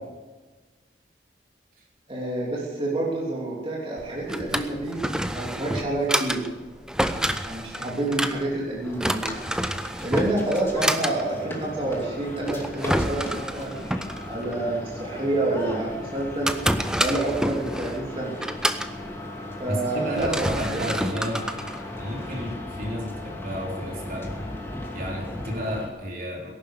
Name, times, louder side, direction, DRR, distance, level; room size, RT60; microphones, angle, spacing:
voice 1, 2.1-6.4 7.4-9.2 10.0-13.8 14.3-16.5 17.0-18.4 19.6-21.2, right 2 dB, 35° right, -5 dB, 3.2 m, -28 dB
Drawer open or close, 4.0-22.5, right 1 dB, 5° right, 0.7 m, -29 dB
sound 1, 8.8-25.9, left 1 dB, 15° left, 2.6 m, -37 dB
voice 2, 19.7-21.4 22.0-24.3 24.9-26.5, equal, 55° right, -1 dB, 3.9 m, -32 dB
18.5 x 11.5 x 6.7 m, 1.3 s
head